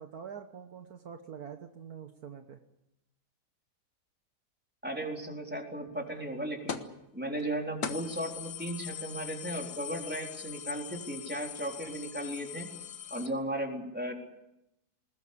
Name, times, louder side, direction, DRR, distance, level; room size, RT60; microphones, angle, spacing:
voice 1, 0.0-2.6, right 7 dB, 65° right, 6 dB, 1.7 m, -45 dB
voice 2, 4.8-6.8 7.1-12.7 13.1-14.1, right 1 dB, 5° right, 1 dB, 4.1 m, -36 dB
sound 1, 6.7-7.0 7.4-7.5 7.8-13.3, left 8 dB, 80° left, 2.0 m, -41 dB
21.5 x 20.5 x 8.7 m, 0.88 s
omnidirectional pair, 1.8 m